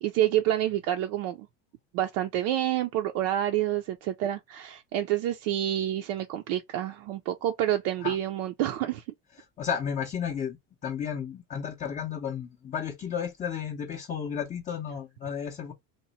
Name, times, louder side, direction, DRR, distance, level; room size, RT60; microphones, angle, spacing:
voice 1, 0.0-1.5 1.9-9.0, right 12 dB, 65° right, 0.5 m, -28 dB
voice 2, 9.6-15.7, left 7 dB, 20° left, 0.5 m, -33 dB
2.9 x 2.1 x 4.0 m
cardioid pair, 145°, 36 cm